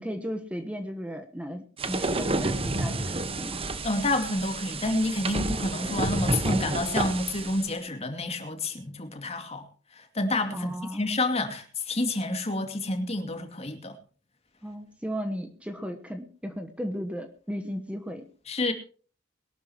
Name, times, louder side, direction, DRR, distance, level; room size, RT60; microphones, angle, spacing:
voice 1, 0.0-3.6 10.5-11.0 14.6-18.3, equal, 5° right, 1.2 m, -35 dB
sound 1, 1.8-7.7, right 2 dB, 30° right, 1.3 m, -30 dB
voice 2, 3.8-9.6 9.9-14.0 18.5-18.7, left 2 dB, 35° left, 2.5 m, -29 dB
22.0 x 12.0 x 3.0 m
head